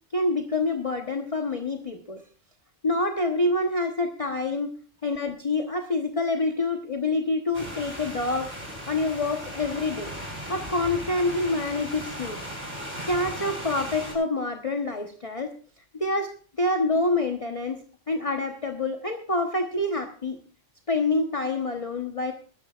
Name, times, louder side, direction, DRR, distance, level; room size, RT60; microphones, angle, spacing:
voice 1, 0.1-2.2 2.8-4.7 5.0-8.5 8.9-10.1 10.5-12.4 13.0-15.5 16.0-16.3 16.6-17.8 18.1-20.4 20.9-22.3, left 2 dB, 30° left, 4 dB, 1.1 m, -27 dB
sound 1, 7.5-14.1, equal, 50° right, 7.4 m, -37 dB
20.0 x 13.0 x 2.4 m, 0.40 s
omnidirectional pair, 1.3 m